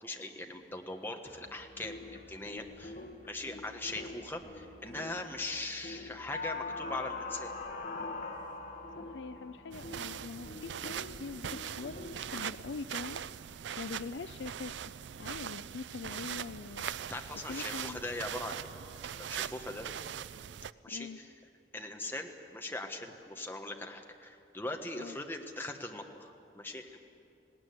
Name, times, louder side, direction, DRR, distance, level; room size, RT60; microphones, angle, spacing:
voice 1, 0.0-3.0 3.3-7.5 17.1-18.7 19.1-19.9 20.8-21.1 21.7-27.0, left 2 dB, 10° left, 3 dB, 1.4 m, -40 dB
sound 1, 1.2-12.4, left 3 dB, 55° left, 2.3 m, -44 dB
voice 2, 9.0-12.0 12.3-13.2 13.8-14.8 15.2-16.9 17.5-18.0 20.9-21.2 25.0-25.2, left 4 dB, 80° left, 14 dB, 0.5 m, -43 dB
sound 2, 9.7-20.7, right 9 dB, 85° right, 0.4 m, -41 dB
19.0 x 18.0 x 9.5 m, 2.5 s
head